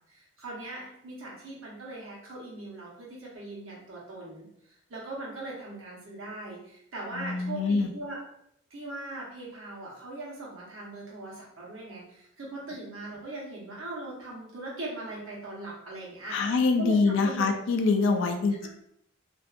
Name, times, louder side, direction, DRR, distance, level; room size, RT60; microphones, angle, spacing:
voice 1, 0.1-8.2 8.7-16.5 16.8-17.4 18.6-18.7, right 2 dB, 70° right, -5 dB, 1.0 m, -40 dB
voice 2, 7.1-7.9 16.3-18.7, left 4 dB, 60° left, 5 dB, 0.3 m, -25 dB
2.5 x 2.3 x 2.4 m, 0.73 s
head